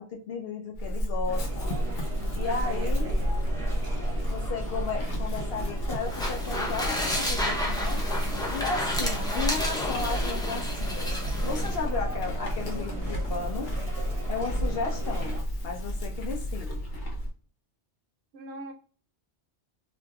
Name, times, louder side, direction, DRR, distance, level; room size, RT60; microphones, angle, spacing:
voice 1, 0.0-1.7 2.4-3.1 4.3-8.0 8.5-13.7 14.3-16.8, left 5 dB, 65° left, 2 dB, 0.8 m, -34 dB
Chewing mastication / Livestock farm animals working animals, 0.7-17.3, equal, 85° left, 1.1 m, -31 dB
sound 1, 1.3-15.4, right 3 dB, 30° right, 0.9 m, -40 dB
voice 2, 2.4-3.4 18.3-18.7, right 3 dB, 70° right, 3 dB, 0.8 m, -42 dB
sound 2, 6.0-11.8, left 1 dB, 5° left, 0.3 m, -32 dB
2.9 x 2.5 x 2.2 m, 0.41 s
omnidirectional pair, 1.2 m